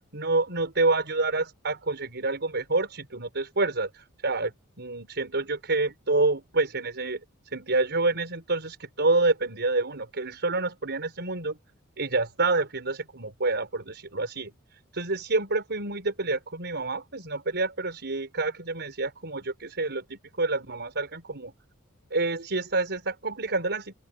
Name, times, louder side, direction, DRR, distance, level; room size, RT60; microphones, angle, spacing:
voice 1, 0.1-4.5 4.8-7.2 7.5-11.6 12.0-14.5 14.9-21.5 22.1-23.9, right 3 dB, 50° right, 5.5 m, -28 dB
open air
head